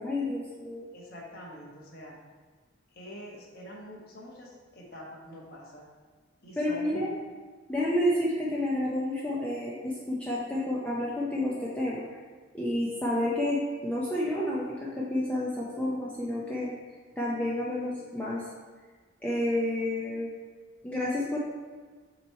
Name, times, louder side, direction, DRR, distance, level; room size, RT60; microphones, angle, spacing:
voice 1, 0.0-0.8 6.6-7.2 7.7-12.0 12.5-16.7 17.2-18.5 19.2-20.3 20.8-21.4, left 1 dB, 5° left, -7 dB, 0.6 m, -30 dB
voice 2, 0.9-2.2 2.9-5.9 6.4-7.1, left 1 dB, 45° left, -3 dB, 1.1 m, -45 dB
7.2 x 3.1 x 4.6 m, 1.4 s
head